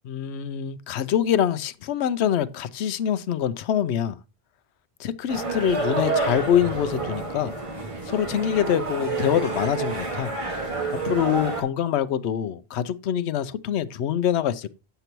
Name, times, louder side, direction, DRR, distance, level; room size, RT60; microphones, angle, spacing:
voice 1, 0.1-4.2 5.0-7.5 8.1-10.3 11.0-14.7, left 9 dB, 90° left, 0.9 m, -25 dB
sound 1, 5.3-11.6, right 3 dB, 30° right, 1.8 m, -29 dB
7.8 x 6.8 x 3.0 m
omnidirectional pair, 1.1 m